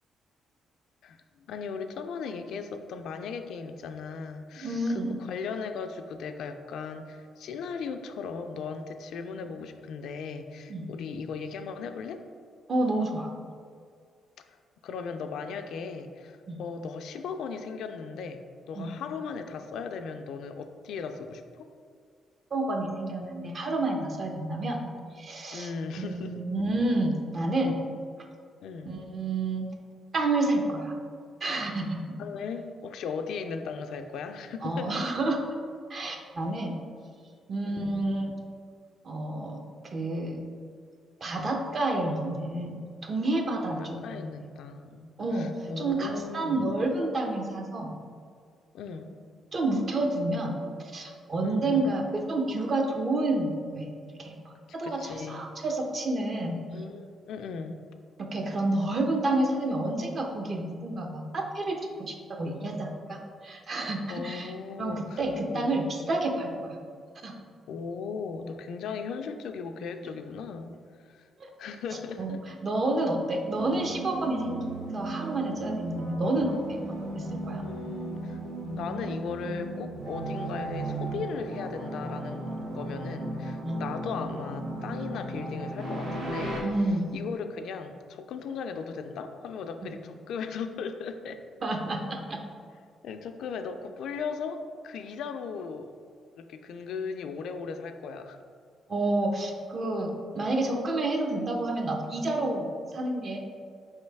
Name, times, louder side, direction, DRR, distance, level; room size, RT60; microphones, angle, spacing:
voice 1, 1.0-12.2 14.8-21.7 25.5-26.4 28.6-28.9 31.6-31.8 32.2-34.9 37.1-37.2 37.6-38.0 41.3-41.5 43.8-46.7 48.7-49.1 51.4-51.9 54.8-55.5 56.7-57.8 64.1-65.2 65.5-65.8 67.7-70.7 71.1-71.3 71.6-72.4 77.6-78.4 78.7-86.6 87.1-91.4 93.0-95.9 96.4-98.4, left 5 dB, 75° left, 7 dB, 0.3 m, -37 dB
voice 2, 4.6-5.2 10.7-10.9 12.7-13.3 16.5-16.6 18.8-18.9 22.5-24.9 25.2-25.7 26.0-27.8 28.8-29.7 30.1-30.9 31.4-32.0 34.6-35.4 35.9-36.8 37.5-38.3 39.0-40.4 41.2-44.3 45.2-45.5 45.8-47.9 49.5-53.9 54.2-56.6 58.2-64.5 64.8-66.8 67.2-67.3 71.4-71.5 72.2-72.4 72.6-77.6 83.6-83.8 86.6-87.1 89.8-89.9 91.6-92.4 98.9-102.7 102.9-103.4, right 2 dB, 45° right, 3 dB, 0.6 m, -29 dB
sound 1, 73.5-86.6, right 2 dB, 75° right, 1.0 m, -35 dB
4.6 x 3.1 x 3.3 m, 2.1 s
cardioid pair, 90°, 0 cm